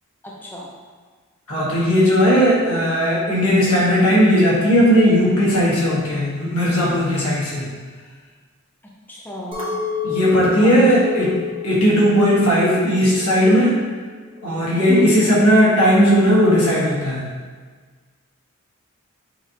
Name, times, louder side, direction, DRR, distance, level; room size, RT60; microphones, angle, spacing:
voice 1, 0.2-0.7 9.1-9.8 10.6-11.0 14.9-15.2, right 1 dB, 10° left, -4 dB, 0.5 m, -27 dB
voice 2, 1.5-7.7 10.0-11.3 11.6-13.8 14.4-17.3, equal, 85° left, -6 dB, 1.4 m, -16 dB
Chink clink, 9.5-13.9 14.3-14.9, left 7 dB, 25° right, 0.8 m, -30 dB
6.0 x 2.9 x 2.8 m, 1.5 s
head